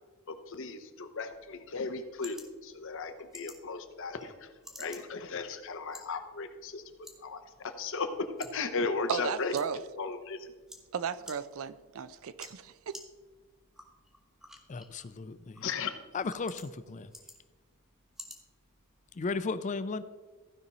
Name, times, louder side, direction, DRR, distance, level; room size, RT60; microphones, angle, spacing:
voice 1, 0.3-4.5 4.8-6.8 7.2-9.5 10.0-10.5 15.6-15.9, left 4 dB, 60° left, 0.9 m, -36 dB
sound 1, 1.3-19.3, left 1 dB, ahead, 1.1 m, -54 dB
voice 2, 9.1-9.8 10.9-13.0, right 7 dB, 65° right, 0.5 m, -35 dB
voice 3, 14.7-15.6 16.1-17.1 19.1-20.0, left 4 dB, 35° left, 0.4 m, -35 dB
15.0 x 5.4 x 4.1 m
head